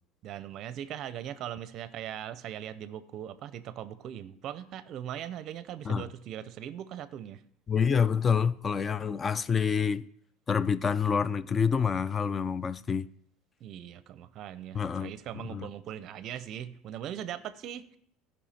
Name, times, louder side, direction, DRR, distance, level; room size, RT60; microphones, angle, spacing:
voice 1, 0.2-7.4 13.6-18.0, right 10 dB, 45° right, 0.6 m, -40 dB
voice 2, 7.7-10.0 10.5-13.1 14.7-15.1 15.5-15.7, left 6 dB, 20° left, 0.3 m, -27 dB
15.0 x 5.5 x 4.3 m
cardioid pair, 150°, 0 cm